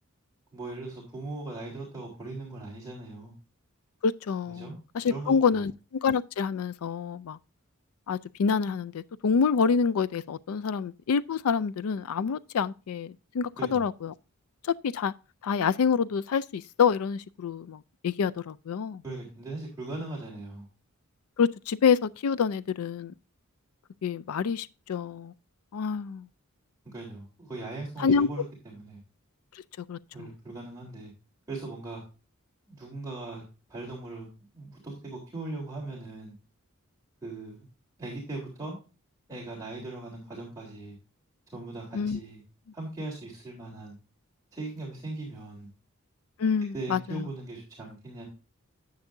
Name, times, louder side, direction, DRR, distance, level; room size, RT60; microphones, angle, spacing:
voice 1, 0.5-3.3 4.5-4.8 5.1-5.6 13.6-13.9 19.0-20.7 26.8-29.0 30.1-31.1 31.5-32.0 32.7-33.4 33.7-36.3 37.2-37.7 38.0-38.8 39.3-41.0 41.5-42.4 42.7-43.9 44.5-45.7 46.7-48.3, right 2 dB, 15° right, 3.5 m, -39 dB
voice 2, 4.0-5.7 6.0-7.4 8.1-14.1 14.6-15.1 15.4-19.0 21.4-23.1 24.0-25.3 25.7-26.3 28.0-28.3 29.5-29.6 29.9-30.3 41.9-42.2 46.4-47.2, left 6 dB, 85° left, 0.4 m, -27 dB
10.5 x 8.2 x 2.6 m
head